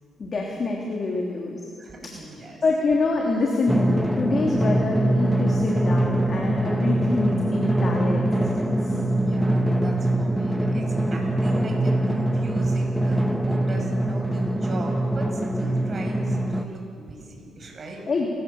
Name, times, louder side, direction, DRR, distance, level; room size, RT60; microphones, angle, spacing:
voice 1, 0.2-1.6 2.6-9.0 18.1-18.3, left 3 dB, 45° left, -1 dB, 3.2 m, -26 dB
voice 2, 1.8-2.6 9.2-18.0, right 2 dB, 40° right, 1 dB, 6.9 m, -39 dB
Drum, 3.7-16.6, right 1 dB, 5° right, 1.5 m, -23 dB
29.5 x 16.5 x 7.3 m, 2.3 s
cardioid pair, 90°, 0 cm